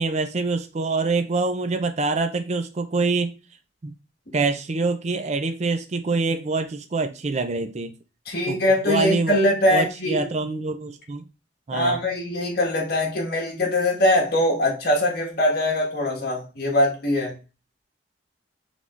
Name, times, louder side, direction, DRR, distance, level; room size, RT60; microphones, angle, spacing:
voice 1, 0.0-3.3 3.8-3.9 4.3-7.9 8.5-8.6 8.9-9.3 9.7-11.2 11.7-12.0, right 3 dB, 40° right, 0.4 m, -25 dB
voice 2, 8.3-10.3 11.7-17.4, left 1 dB, 60° left, 1.6 m, -22 dB
5.0 x 3.5 x 2.4 m
head